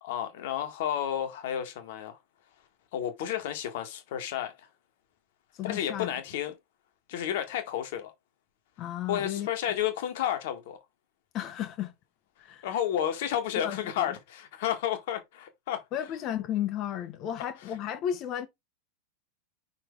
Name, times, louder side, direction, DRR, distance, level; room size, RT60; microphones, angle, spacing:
voice 1, 0.0-2.2 2.9-4.7 5.6-6.6 7.1-8.1 9.1-10.8 12.6-15.8, left 10 dB, 50° left, 1.7 m, -31 dB
voice 2, 5.6-6.1 8.8-9.5 11.3-11.9 12.4-12.6 13.6-14.1 15.9-18.5, left 10 dB, 35° left, 1.1 m, -33 dB
5.7 x 4.3 x 4.7 m
figure-of-eight pair, 90°, 0 cm